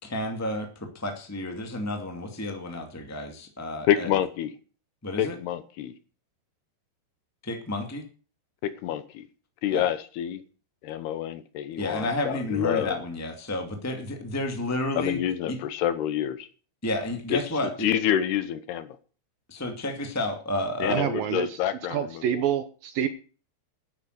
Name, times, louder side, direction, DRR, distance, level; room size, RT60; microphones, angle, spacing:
voice 1, 0.0-4.1 5.0-5.4 7.4-8.0 9.7-9.8 11.8-15.2 15.5-15.6 16.8-17.9 19.5-21.0, left 1 dB, 10° left, 0.7 m, -31 dB
voice 2, 3.9-4.5 5.2-6.0 8.6-9.2 9.6-10.4 10.8-12.9 15.0-16.5 17.3-17.4 17.8-18.9 20.8-22.2, left 10 dB, 75° left, 2.9 m, -27 dB
voice 3, 20.9-21.6 21.9-23.1, right 9 dB, 70° right, 2.4 m, -27 dB
12.0 x 10.5 x 6.6 m
omnidirectional pair, 5.0 m